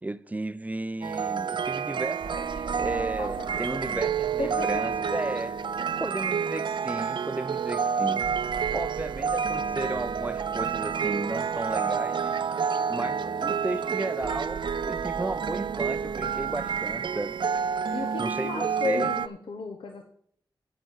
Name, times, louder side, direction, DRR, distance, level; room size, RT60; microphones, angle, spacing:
voice 1, 0.0-5.5 6.0-8.2 8.7-12.4 12.9-17.4 17.9-19.1, right 2 dB, 20° right, 0.5 m, -34 dB
sound 1, 1.0-19.3, right 6 dB, 70° right, 0.5 m, -29 dB
sound 2, 2.2-6.8 8.2-12.6 14.2-18.8, right 4 dB, 85° right, 0.9 m, -45 dB
voice 2, 2.9-4.0 4.4-4.9 17.9-20.0, left 3 dB, 80° left, 1.1 m, -34 dB
9.5 x 6.7 x 7.5 m
cardioid pair, 60°, 8 cm